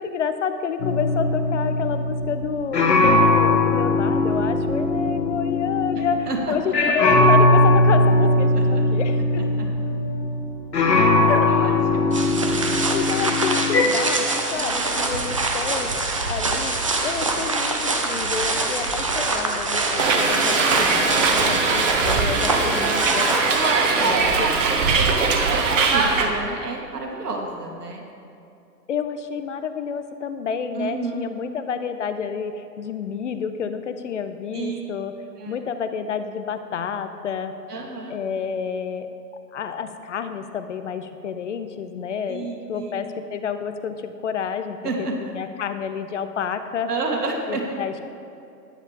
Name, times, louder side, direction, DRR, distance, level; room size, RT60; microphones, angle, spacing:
voice 1, 0.0-9.5 11.3-11.5 12.9-16.7 17.0-23.3 24.0-24.5 28.9-35.1 35.5-37.5 38.1-39.1 39.5-44.8 45.2-46.9 47.5-48.1, left 7 dB, 50° left, 9 dB, 0.7 m, -29 dB
sound 1, 0.8-6.4 6.7-13.8, left 2 dB, 80° left, 1.6 m, -20 dB
voice 2, 5.9-6.6 6.8-6.9 8.5-8.9 9.4-9.7 10.8-11.1 11.4-12.2 14.6-15.1 22.3-23.2 23.9-28.0 30.7-31.3 34.5-34.8 35.4-35.7 37.7-38.2 42.3-43.0 44.8-45.1 46.9-47.6, right 3 dB, 70° right, 1 dB, 2.1 m, -31 dB
sound 2, 12.1-24.1, right 3 dB, 20° right, 0.4 m, -25 dB
Hiss, 20.0-26.3, right 4 dB, 50° right, 1.4 m, -21 dB
13.0 x 9.9 x 3.6 m, 2.7 s
figure-of-eight pair, 130°, 49 cm